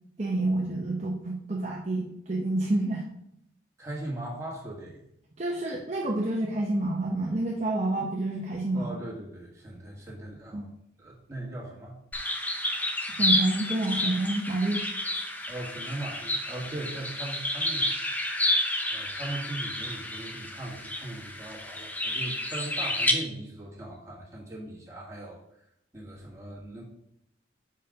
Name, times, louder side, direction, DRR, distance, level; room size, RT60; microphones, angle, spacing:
voice 1, 0.2-3.0 5.4-8.9 10.5-10.7 13.2-14.8, right 2 dB, 35° right, -2 dB, 0.7 m, -28 dB
voice 2, 3.8-5.0 8.7-10.7 11.0-12.0 15.5-18.3 18.9-25.6 25.9-26.8, right 1 dB, 15° right, -4 dB, 1.9 m, -39 dB
sound 1, 12.1-23.1, left 1 dB, 10° left, 0.6 m, -30 dB
5.1 x 4.7 x 5.2 m, 0.76 s
head